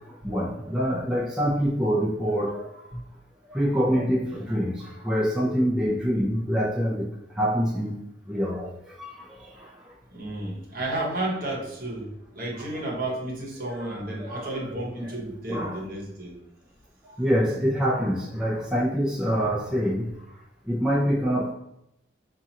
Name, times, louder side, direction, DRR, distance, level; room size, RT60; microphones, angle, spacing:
voice 1, 0.0-2.8 3.5-7.1 7.4-9.9 13.7-13.9 14.3-14.6 15.5-15.8 17.1-20.1 20.7-21.5, equal, 5° right, 0.6 m, -26 dB
voice 2, 10.1-16.4, right 1 dB, 50° right, 1.1 m, -32 dB
5.5 x 2.5 x 2.8 m
head